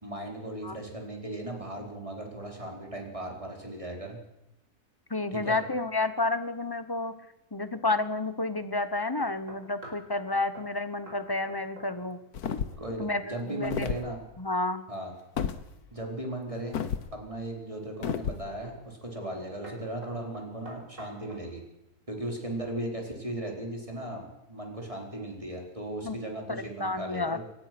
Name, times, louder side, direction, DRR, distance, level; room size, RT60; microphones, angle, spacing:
voice 1, 0.0-4.2 5.3-5.6 12.8-14.2 14.9-15.1 15.9-16.8 17.1-21.6 22.1-27.4, right 1 dB, 20° right, 1 dB, 4.4 m, -37 dB
voice 2, 5.1-7.1 7.5-12.2 13.0-13.9 14.4-14.8 26.0-26.2 26.5-27.4, left 2 dB, 15° left, 11 dB, 0.9 m, -30 dB
sound 1, 9.2-10.1 10.5-10.7 11.1-11.2 11.5-12.2 12.5-12.8 16.2-16.8 17.4-17.8 18.6-18.9 19.2-19.4 19.6-21.5, right 1 dB, 50° right, 5.3 m, -47 dB
sound 2, 12.3-12.9 13.6-14.1 15.4-15.6 16.7-17.1 18.0-18.4, left 7 dB, 70° left, 1.6 m, -31 dB
22.5 x 19.5 x 6.1 m, 0.90 s
omnidirectional pair, 1.7 m